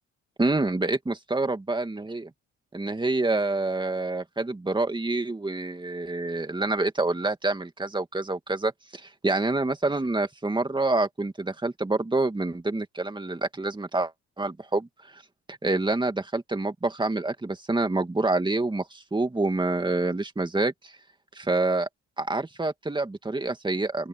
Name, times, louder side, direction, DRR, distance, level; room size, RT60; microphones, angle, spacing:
voice 1, 0.4-2.3 2.7-14.1 14.4-14.9 15.1-15.2 15.5-20.7 21.4-21.9 22.2-24.1, right 2 dB, 15° right, 2.4 m, -27 dB
open air
cardioid pair, 90°, 30 cm